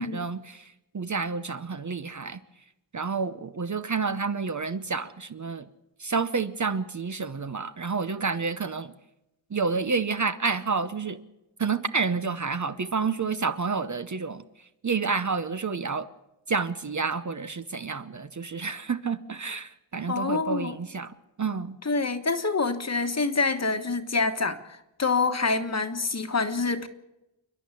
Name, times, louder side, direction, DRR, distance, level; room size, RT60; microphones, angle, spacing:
voice 1, 0.0-2.4 2.9-5.6 6.0-8.9 9.5-11.2 11.6-14.4 14.8-16.1 16.5-21.8, right 5 dB, 35° right, 11 dB, 0.8 m, -29 dB
voice 2, 20.1-20.7 21.8-26.9, left 4 dB, 30° left, 9 dB, 1.4 m, -26 dB
29.0 x 11.5 x 8.4 m, 0.92 s
wide cardioid pair, 165°, 50 cm